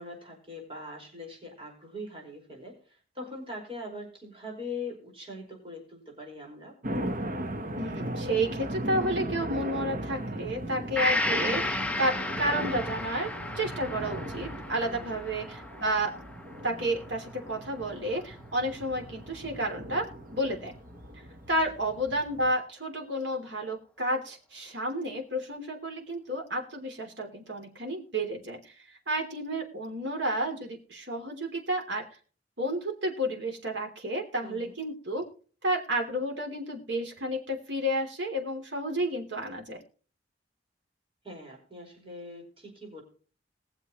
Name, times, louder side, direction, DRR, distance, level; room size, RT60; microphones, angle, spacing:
voice 1, 0.0-2.8 3.1-6.7 14.9-15.4 34.4-34.7 41.2-43.0, left 2 dB, 30° right, 0 dB, 5.1 m, -42 dB
sound 1, 6.8-22.5, right 1 dB, 50° right, 1.2 m, -38 dB
voice 2, 7.8-13.3 13.5-16.2 16.6-20.1 20.3-20.7 21.5-28.8 29.1-32.0 32.6-35.2 35.6-39.8, right 1 dB, 75° right, 1 dB, 3.1 m, -31 dB
Gong, 11.0-18.6 19.0-19.1, left 2 dB, 10° left, 0.8 m, -34 dB
22.0 x 7.4 x 3.1 m, 0.40 s
head